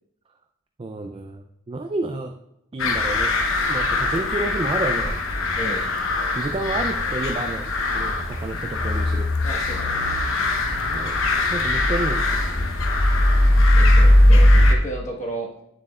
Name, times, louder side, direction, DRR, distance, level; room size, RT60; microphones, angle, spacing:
voice 1, 0.8-2.3 2.7-3.3 3.7-5.2 6.4-9.3 10.9-11.2 11.5-12.7, right 2 dB, 25° right, 5 dB, 0.3 m, -30 dB
sound 1, 2.8-14.7, left 1 dB, 60° left, 0.8 m, -20 dB
voice 2, 9.4-10.0 13.8-15.5, right 1 dB, 30° left, -1 dB, 1.2 m, -32 dB
8.9 x 7.1 x 2.3 m, 0.82 s
head